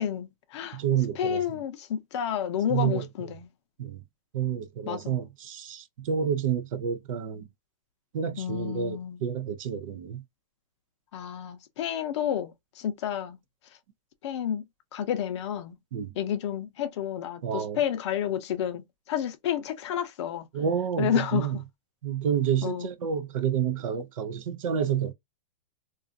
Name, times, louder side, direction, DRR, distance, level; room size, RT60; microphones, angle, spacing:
voice 1, 0.0-0.8 1.1-3.5 4.9-5.2 8.4-9.2 11.1-13.4 14.2-14.6 14.9-15.8 16.2-20.5 21.0-21.6 22.6-22.9, left 9 dB, 45° left, 0.6 m, -30 dB
voice 2, 0.7-1.4 2.7-3.3 3.8-4.0 4.3-7.5 8.1-10.2 15.9-16.1 17.4-17.8 20.5-21.6 22.0-25.1, right 8 dB, 55° right, 0.5 m, -29 dB
2.4 x 2.3 x 2.5 m
hypercardioid pair, 155°, 21 cm